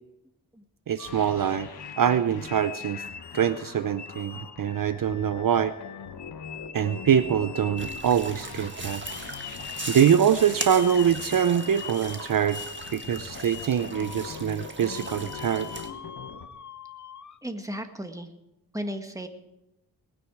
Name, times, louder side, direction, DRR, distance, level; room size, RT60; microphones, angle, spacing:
voice 1, 0.9-1.7 2.0-3.0 3.3-5.7 6.7-9.0 9.9-12.6 12.9-15.7, right 8 dB, 55° right, 13 dB, 0.6 m, -24 dB
sound 1, 1.0-16.5, left 6 dB, 70° left, 1.2 m, -43 dB
sound 2, 1.0-3.6 4.0-17.4, left 6 dB, 45° left, 0.8 m, -43 dB
sound 3, 7.8-15.9, right 3 dB, 30° right, 1.7 m, -39 dB
voice 2, 17.4-18.3 18.7-19.3, equal, 10° right, 6 dB, 1.6 m, -36 dB
20.5 x 9.7 x 4.8 m, 0.90 s
cardioid pair, 70°, 39 cm